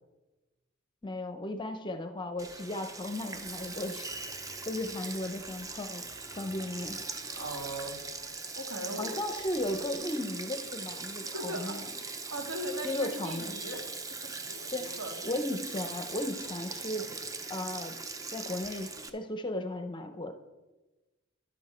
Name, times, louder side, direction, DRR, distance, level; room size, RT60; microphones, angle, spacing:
voice 1, 1.0-6.0 6.4-7.0 9.0-11.9 12.8-13.5 14.7-15.0 15.2-17.1 17.5-17.9 18.3-20.3, left 1 dB, 25° left, 8 dB, 0.6 m, -35 dB
Sink (filling or washing), 2.4-19.1, right 3 dB, 15° right, 0.6 m, -40 dB
sound 1, 3.3-10.0, equal, 55° right, 2.9 m, -58 dB
voice 2, 7.3-8.0 8.6-9.2 11.3-11.8 12.3-13.9 14.2-15.1, right 1 dB, 80° right, 1 dB, 1.9 m, -38 dB
10.5 x 7.2 x 4.3 m, 1.1 s
head